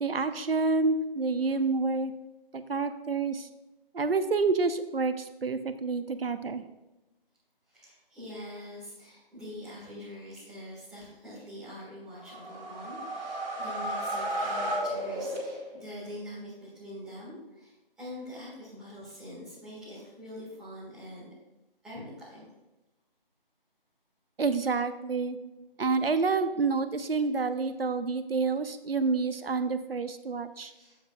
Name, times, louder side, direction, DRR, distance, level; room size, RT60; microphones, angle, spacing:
voice 1, 0.0-2.1 2.5-3.4 3.9-6.6 24.4-25.4 25.8-30.7, right 4 dB, 80° right, 11 dB, 0.8 m, -28 dB
voice 2, 7.7-21.3 21.8-22.5 29.4-29.5 30.6-31.0, left 1 dB, ahead, -12 dB, 1.9 m, -44 dB
sound 1, 12.1-15.9, right 1 dB, 45° right, 2.5 m, -33 dB
10.0 x 7.2 x 2.4 m, 1.0 s
figure-of-eight pair, 160°, 29 cm